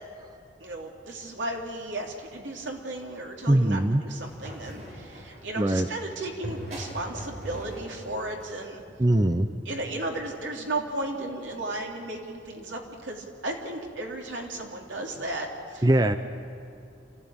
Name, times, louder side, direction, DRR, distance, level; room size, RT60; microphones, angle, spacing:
voice 1, 0.6-8.8 9.6-15.9, right 2 dB, 80° right, 0 dB, 3.2 m, -35 dB
voice 2, 3.5-4.0 5.6-5.9 9.0-9.5 15.8-16.2, right 1 dB, 20° right, 9 dB, 0.7 m, -21 dB
sound 1, 4.2-9.1, equal, 40° right, 4.9 m, -41 dB
28.0 x 15.0 x 8.9 m, 2.6 s
head